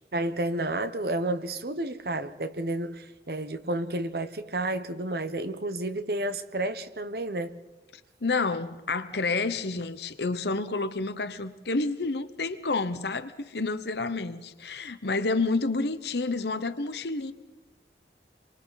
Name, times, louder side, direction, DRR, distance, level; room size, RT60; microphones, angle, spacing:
voice 1, 0.1-7.6, right 1 dB, 65° right, 1.0 m, -31 dB
voice 2, 8.2-17.3, left 3 dB, 75° left, 1.0 m, -29 dB
28.5 x 23.5 x 4.1 m
head